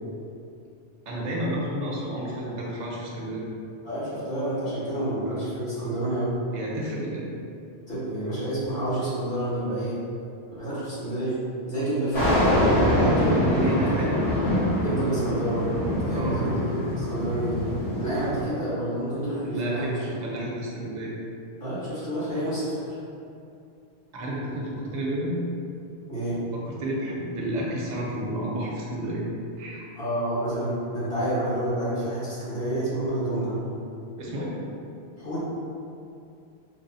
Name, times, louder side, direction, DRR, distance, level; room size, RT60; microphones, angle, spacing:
voice 1, 1.1-3.5 6.5-7.3 12.6-14.2 16.1-16.4 19.4-21.1 24.1-25.4 26.5-29.2 29.6-29.8 34.2-34.6, right 1 dB, 45° right, -4 dB, 0.7 m, -31 dB
voice 2, 3.8-6.3 7.9-10.0 10.6-11.4 11.7-12.6 12.9-14.1 14.8-15.7 16.0-17.6 18.0-19.9 21.6-22.7 26.1-26.4 29.9-33.6 35.2-35.4, right 1 dB, 60° left, -11 dB, 1.5 m, -29 dB
sound 1, 12.1-18.4, equal, 75° left, 1.6 m, -24 dB
4.0 x 2.4 x 2.6 m, 2.6 s
omnidirectional pair, 1.1 m